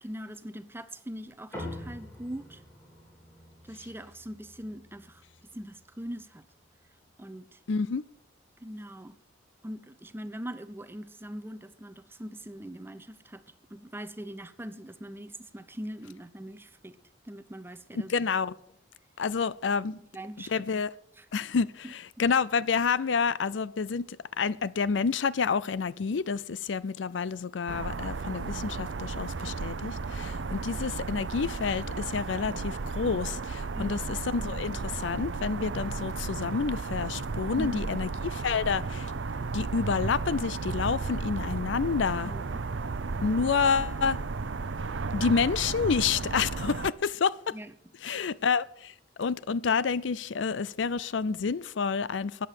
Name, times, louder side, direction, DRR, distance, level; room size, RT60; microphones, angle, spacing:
voice 1, 0.0-2.6 3.6-5.2 5.5-6.4 7.2-7.6 8.6-9.2 9.6-13.4 13.7-17.0 17.2-18.1 19.9-20.6 21.2-21.3 21.8-21.9 33.7-34.1 37.6-37.9 42.2-42.6 47.5-47.7, equal, 10° right, 0.7 m, -41 dB
sound 1, 1.5-6.3, left 1 dB, 15° left, 3.6 m, -45 dB
voice 2, 7.7-8.0 18.0-18.5 19.2-20.0 20.5-20.9 21.3-39.1 39.5-42.3 43.2-44.2 45.1-47.5 48.0-52.5, left 5 dB, 70° left, 0.5 m, -29 dB
sound 2, 27.7-46.9, right 4 dB, 70° right, 0.6 m, -34 dB
14.0 x 9.2 x 6.6 m
head